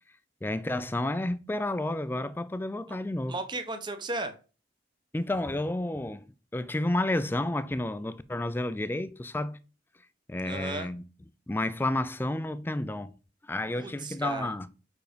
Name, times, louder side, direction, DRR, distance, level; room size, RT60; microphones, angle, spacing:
voice 1, 0.4-3.3 5.1-6.3 6.5-9.6 10.3-11.0 11.5-13.1 13.5-14.7, left 1 dB, 10° left, 0.3 m, -31 dB
voice 2, 3.3-4.3 10.4-10.9 13.7-14.5, right 2 dB, 25° right, 0.7 m, -35 dB
4.7 x 4.6 x 5.1 m
head